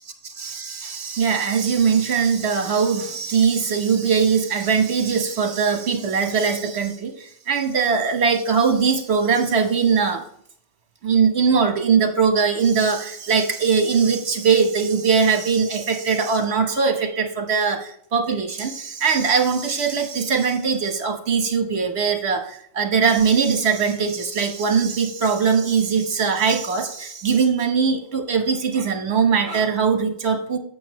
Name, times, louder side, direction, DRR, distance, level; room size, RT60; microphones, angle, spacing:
voice 1, 0.2-10.2 11.0-30.6, right 5 dB, 60° right, 4 dB, 1.4 m, -21 dB
8.3 x 6.8 x 3.1 m, 0.63 s
omnidirectional pair, 1.2 m